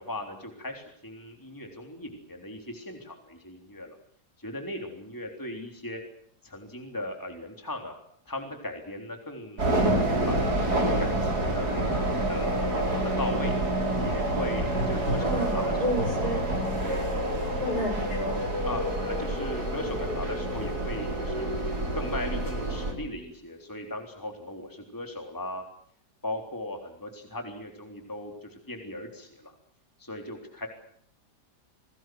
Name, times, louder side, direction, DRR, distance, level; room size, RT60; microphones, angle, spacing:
voice 1, 0.0-4.0 4.4-6.0 6.4-7.9 8.3-10.6 11.0-11.9 12.3-13.5 14.0-16.1 16.8-17.1 18.6-21.5 21.9-25.6 26.2-29.5 30.0-30.7, left 1 dB, 10° left, 3 dB, 3.6 m, -38 dB
sound 1, 9.6-22.9, right 1 dB, 65° right, 5.0 m, -28 dB
voice 2, 15.2-16.4 17.6-18.4, equal, 65° left, 3 dB, 8.4 m, -30 dB
28.5 x 19.5 x 7.8 m, 0.64 s
omnidirectional pair, 1.8 m